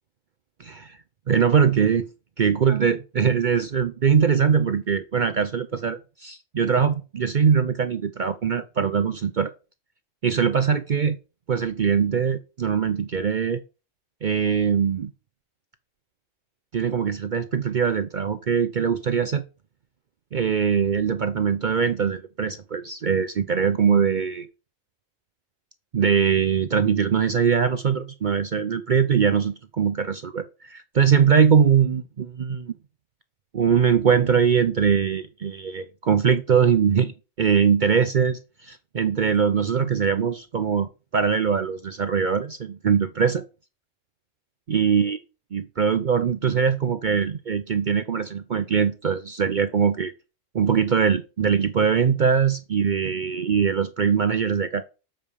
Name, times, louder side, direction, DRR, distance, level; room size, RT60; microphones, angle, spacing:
voice 1, 0.6-1.0 1.3-2.1 2.4-9.5 10.2-11.2 11.5-13.6 14.2-15.1 16.7-19.4 20.3-24.5 25.9-32.7 33.5-43.4 44.7-45.2 45.5-50.1 50.5-54.8, right 7 dB, 50° right, 0.6 m, -22 dB
7.1 x 5.1 x 6.5 m
omnidirectional pair, 1.3 m